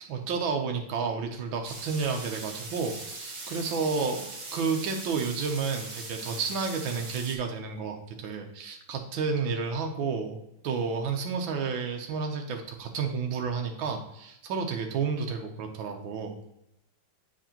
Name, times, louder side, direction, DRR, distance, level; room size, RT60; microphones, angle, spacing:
voice 1, 0.0-10.4 10.6-16.4, right 5 dB, 85° right, 3 dB, 1.6 m, -31 dB
sound 1, 1.6-7.4, right 2 dB, 65° right, 1.9 m, -40 dB
7.4 x 5.8 x 2.9 m, 0.83 s
omnidirectional pair, 2.1 m